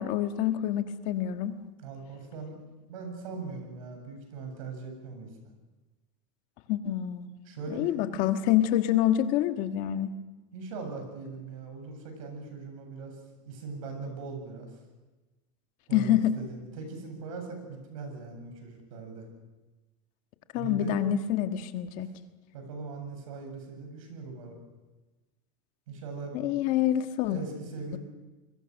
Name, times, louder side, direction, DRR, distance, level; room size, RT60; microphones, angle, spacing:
voice 1, 0.0-1.6 6.7-7.3 7.7-10.1 15.9-16.3 20.5-22.1 26.3-27.4, left 11 dB, 50° left, 8 dB, 1.5 m, -26 dB
voice 2, 1.8-2.6 2.9-5.3 7.4-8.0 10.5-13.2 13.5-14.7 15.9-19.3 20.5-21.1 22.0-22.1 22.5-24.6 25.9-26.6 27.3-28.0, right 4 dB, 85° right, 5 dB, 8.0 m, -40 dB
26.5 x 22.0 x 6.5 m, 1.2 s
supercardioid pair, 155°, 17 cm